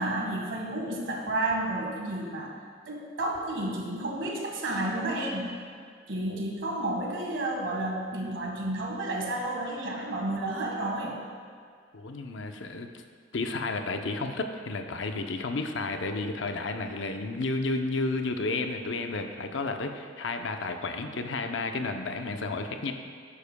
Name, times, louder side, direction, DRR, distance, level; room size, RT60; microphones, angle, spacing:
voice 1, 0.0-2.5 2.9-5.5 6.1-11.2, right 1 dB, 75° right, -1 dB, 1.6 m, -31 dB
voice 2, 11.9-12.9 13.3-22.9, left 3 dB, 70° left, 5 dB, 0.7 m, -32 dB
12.0 x 9.8 x 2.3 m, 2.1 s
head